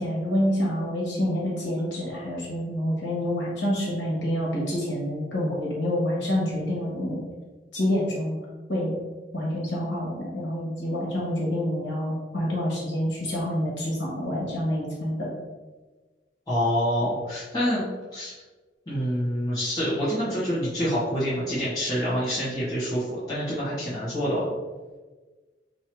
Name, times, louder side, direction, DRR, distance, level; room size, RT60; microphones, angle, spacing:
voice 1, 0.0-7.2 7.7-8.3 8.7-8.9 9.3-15.3, equal, 85° left, -6 dB, 1.4 m, -27 dB
voice 2, 16.5-17.8 18.1-18.3 18.9-24.4, equal, 20° left, -13 dB, 1.1 m, -26 dB
3.0 x 2.8 x 4.4 m, 1.3 s
head